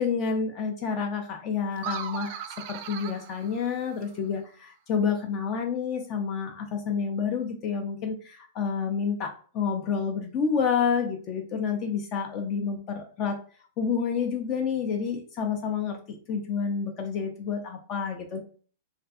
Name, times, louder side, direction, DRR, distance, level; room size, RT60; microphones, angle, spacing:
voice 1, 0.0-13.4 13.8-16.0 16.3-18.4, left 6 dB, 40° left, 4 dB, 0.4 m, -29 dB
sound 1, 1.8-4.3, right 10 dB, 50° right, 0.3 m, -38 dB
2.5 x 2.3 x 2.3 m, 0.41 s
hypercardioid pair, 125°, 0 cm